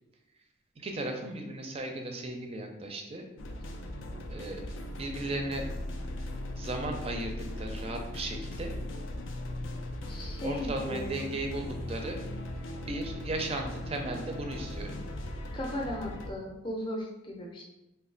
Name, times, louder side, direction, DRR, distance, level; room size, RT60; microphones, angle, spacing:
voice 1, 0.8-3.3 4.3-5.7 6.6-8.7 10.3-12.2 12.9-15.0, right 2 dB, 30° right, 3 dB, 0.4 m, -36 dB
sound 1, 3.4-16.3, left 1 dB, 80° left, 0.4 m, -38 dB
voice 2, 10.1-11.3 15.5-17.6, left 1 dB, 25° left, -1 dB, 0.6 m, -36 dB
3.1 x 2.3 x 3.8 m, 0.94 s
head